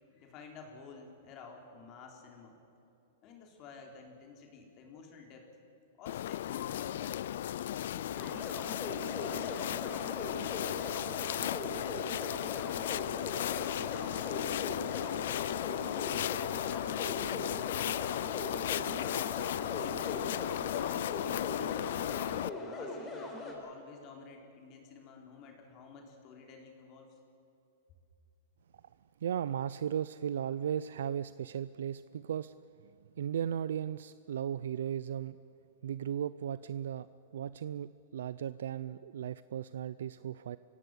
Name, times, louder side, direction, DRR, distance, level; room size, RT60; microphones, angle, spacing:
voice 1, 0.1-2.6 3.2-5.5 6.0-7.4 7.9-8.5 9.1-10.8 11.3-12.9 13.5-15.3 16.4-17.4 18.0-19.3 19.7-21.1 21.9-27.2, left 5 dB, 35° left, 2 dB, 3.8 m, -52 dB
sound 1, 6.1-22.5, left 12 dB, 70° left, 0.5 m, -35 dB
sound 2, 8.1-23.5, left 2 dB, 15° left, 4.2 m, -41 dB
voice 2, 29.2-32.5 33.2-35.4 35.8-37.1 37.3-40.6, right 9 dB, 80° right, 15 dB, 0.5 m, -36 dB
25.0 x 17.0 x 7.9 m, 2.7 s
hypercardioid pair, 145°, 0 cm